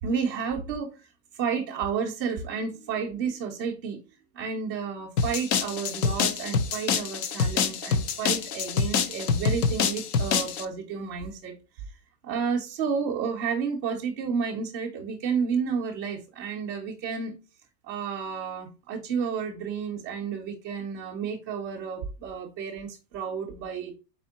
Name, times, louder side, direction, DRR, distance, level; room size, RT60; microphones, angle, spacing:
voice 1, 0.0-4.0 4.3-11.5 12.2-17.4 17.9-23.9, right 6 dB, 15° right, 0.4 m, -31 dB
sound 1, 5.2-10.6, left 6 dB, 60° left, 0.7 m, -26 dB
4.2 x 4.0 x 2.8 m
supercardioid pair, 165°, 49 cm